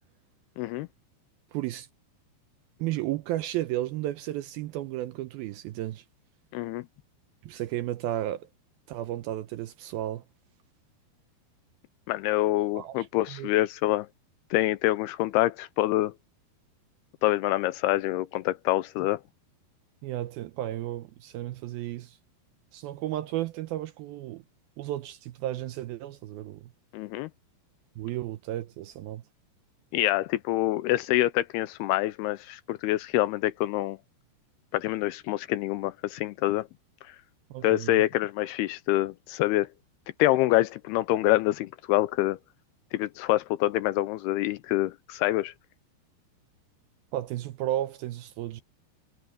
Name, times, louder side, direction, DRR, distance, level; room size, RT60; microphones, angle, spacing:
voice 1, 0.6-0.9 6.5-6.8 12.1-14.1 14.5-16.1 17.2-19.2 26.9-27.3 29.9-34.0 34.7-36.7 37.6-39.7 40.2-42.4 42.9-45.5, left 16 dB, 85° left, 2.4 m, -26 dB
voice 2, 1.5-1.9 2.8-6.0 7.4-8.5 8.9-10.2 12.8-13.5 20.0-22.2 22.7-24.4 24.8-26.7 28.0-29.2 37.5-38.0 47.1-48.6, right 14 dB, 80° right, 2.3 m, -33 dB
omnidirectional pair, 4.9 m